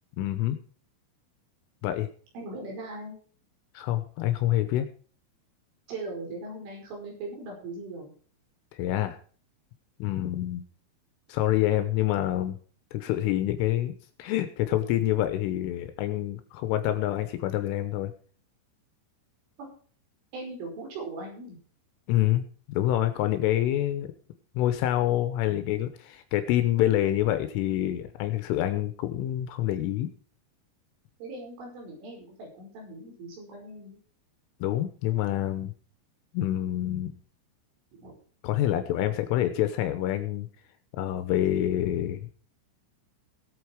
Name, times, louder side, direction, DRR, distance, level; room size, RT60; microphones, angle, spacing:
voice 1, 0.2-0.6 1.8-2.1 3.7-4.9 8.7-9.2 10.0-10.6 11.3-12.6 12.9-13.9 14.2-18.1 22.1-24.1 24.6-30.1 34.6-35.7 36.3-37.1 38.4-40.5 40.9-42.5, left 13 dB, 80° left, 9 dB, 3.4 m, -27 dB
voice 2, 2.3-3.2 5.9-8.1 19.6-19.7 20.3-21.6 31.2-34.0 38.0-38.1, right 2 dB, 70° right, 0 dB, 7.8 m, -39 dB
17.5 x 8.5 x 4.7 m, 0.43 s
omnidirectional pair, 5.9 m